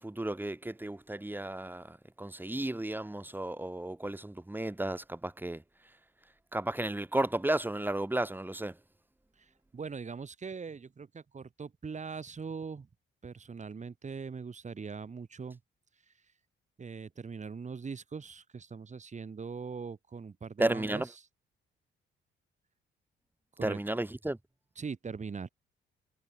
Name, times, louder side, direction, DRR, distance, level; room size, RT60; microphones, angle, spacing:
voice 1, 0.0-5.6 6.5-8.8 20.6-21.1 23.6-24.4, right 1 dB, 10° right, 5.7 m, -33 dB
voice 2, 9.4-12.9 13.2-15.6 16.1-16.2 16.8-21.1 23.6-23.8 24.8-25.5, right 5 dB, 35° right, 6.1 m, -41 dB
cardioid pair, 90°, 20 cm